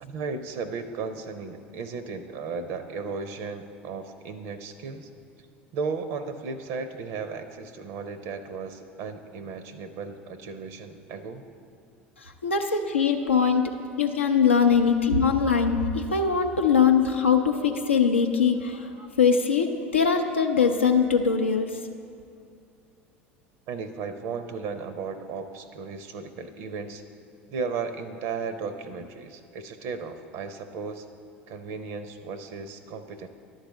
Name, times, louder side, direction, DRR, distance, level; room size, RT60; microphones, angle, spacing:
voice 1, 0.0-5.1 5.7-11.4 12.7-12.8 23.7-27.0 27.5-31.1 31.5-33.3, right 5 dB, 55° right, 10 dB, 0.5 m, -35 dB
voice 2, 12.2-13.7 14.0-21.8, left 6 dB, 85° left, 3 dB, 0.4 m, -22 dB
11.0 x 4.0 x 7.1 m, 2.4 s
figure-of-eight pair, 70°, 6 cm